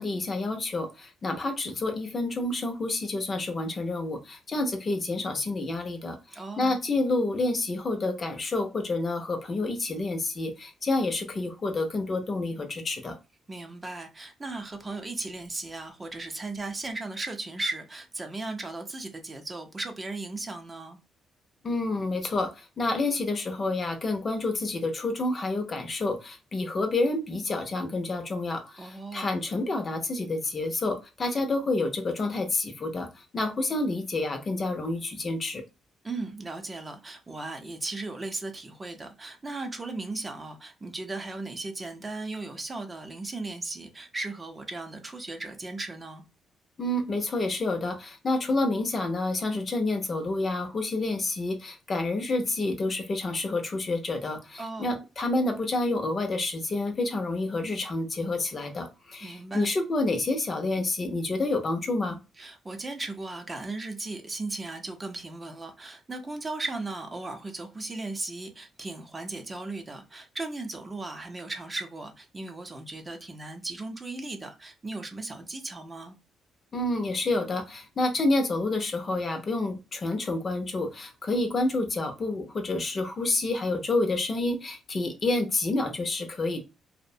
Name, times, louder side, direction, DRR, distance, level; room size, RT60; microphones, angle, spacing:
voice 1, 0.0-6.2 6.6-13.2 21.6-35.6 46.8-62.2 76.7-86.6, left 2 dB, 40° left, 0.6 m, -29 dB
voice 2, 6.3-6.8 13.5-21.0 28.8-29.5 36.0-46.2 54.6-55.0 59.2-59.7 62.4-76.2, right 2 dB, 25° right, 0.6 m, -36 dB
2.6 x 2.1 x 2.6 m
cardioid pair, 90°, 0 cm